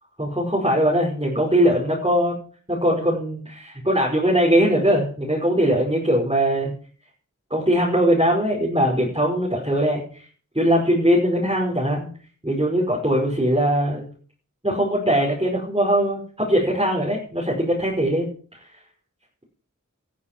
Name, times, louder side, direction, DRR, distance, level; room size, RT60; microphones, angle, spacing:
voice 1, 0.2-2.4 2.7-6.7 7.5-10.0 10.6-12.1 12.4-14.0 14.6-18.3, equal, 20° right, -4 dB, 5.4 m, -21 dB
14.0 x 13.0 x 6.1 m, 0.43 s
wide cardioid pair, 45°, 31 cm